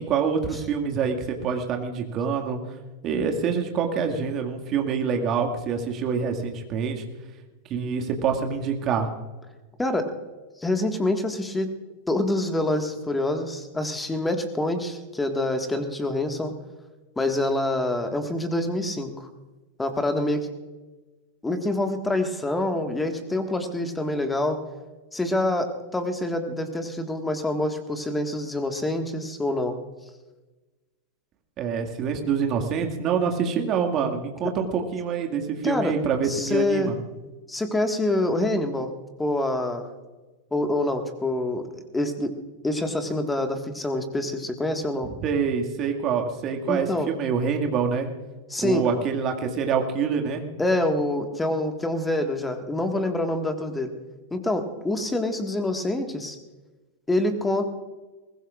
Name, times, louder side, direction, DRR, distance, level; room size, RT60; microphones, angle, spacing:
voice 1, 0.0-2.6 3.0-7.0 7.7-9.1 31.6-36.9 45.2-48.1 48.6-50.4, right 6 dB, 35° right, 3 dB, 2.1 m, -26 dB
voice 2, 9.8-10.1 10.6-11.8 12.1-16.5 17.2-19.3 19.8-20.5 21.4-24.6 25.1-29.8 35.6-36.0 36.2-36.9 37.5-38.9 39.2-39.9 40.5-42.4 42.6-45.1 46.7-47.1 48.5-48.8 50.6-53.9 54.3-56.4 57.1-57.7, left 1 dB, 10° left, 6 dB, 1.7 m, -26 dB
22.5 x 20.0 x 2.5 m, 1.2 s
figure-of-eight pair, 90°, 0 cm